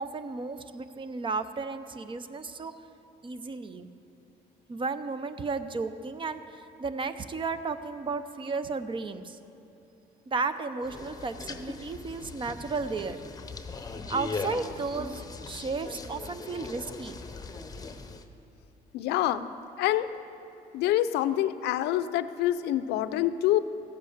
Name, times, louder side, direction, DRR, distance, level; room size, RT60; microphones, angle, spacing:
voice 1, 0.0-2.7 3.2-3.9 4.7-9.4 10.3-13.2 14.0-17.2, right 4 dB, 30° right, 11 dB, 0.6 m, -34 dB
sound 1, 10.8-18.2, left 3 dB, 20° left, 0.8 m, -39 dB
voice 2, 18.9-19.5 19.8-20.1 20.7-23.6, left 13 dB, 85° left, 13 dB, 0.5 m, -26 dB
15.0 x 8.1 x 6.6 m, 2.9 s
cardioid pair, 110°, 17 cm